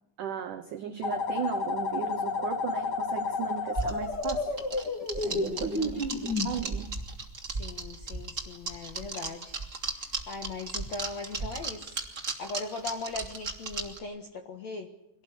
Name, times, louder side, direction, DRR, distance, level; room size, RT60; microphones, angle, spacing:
voice 1, 0.2-4.6 5.2-6.9, right 9 dB, 90° right, 9 dB, 1.8 m, -36 dB
sound 1, 1.0-6.5, left 3 dB, 30° left, 2.1 m, -31 dB
sound 2, 3.8-14.0, right 3 dB, 25° right, 2.0 m, -35 dB
voice 2, 5.1-6.2 7.5-9.6 10.0-12.0 12.4-14.9, left 3 dB, 65° left, 6 dB, 1.8 m, -40 dB
24.5 x 18.0 x 10.0 m, 0.88 s
omnidirectional pair, 5.5 m